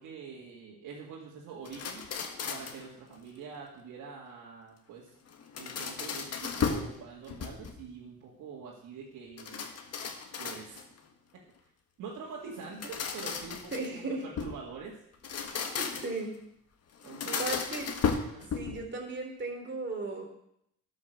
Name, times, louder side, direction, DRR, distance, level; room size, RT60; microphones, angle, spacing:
voice 1, 0.0-2.0 2.5-5.2 5.6-9.7 10.4-10.8 12.0-15.0 17.0-17.6 18.2-18.5, right 5 dB, 80° right, -4 dB, 2.2 m, -45 dB
sound 1, 1.7-2.9 5.3-6.9 7.3-7.9 9.4-11.0 12.6-14.6 15.1-16.3 17.0-18.9, left 6 dB, 55° left, 1.6 m, -35 dB
voice 2, 13.7-14.2 15.6-16.3 17.4-17.9 18.5-20.2, right 3 dB, 35° right, 1 dB, 3.5 m, -36 dB
12.5 x 6.4 x 6.5 m, 0.75 s
cardioid pair, 90°, 30 cm